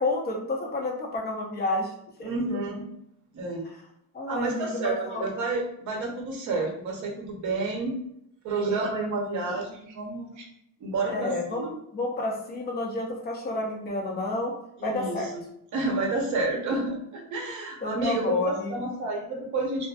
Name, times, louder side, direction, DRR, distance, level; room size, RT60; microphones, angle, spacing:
voice 1, 0.0-1.9 2.2-2.6 4.1-5.3 11.1-11.7 11.9-14.5 14.8-15.3 16.7-16.9 17.8-18.8, left 2 dB, 25° left, 0 dB, 0.5 m, -30 dB
voice 2, 2.2-2.9 3.3-3.7 4.3-8.0 8.4-10.4 10.8-11.8 14.8-15.4 15.7-19.9, right 3 dB, 50° right, 1 dB, 0.7 m, -30 dB
2.5 x 2.4 x 2.3 m, 0.74 s
cardioid pair, 155°, 37 cm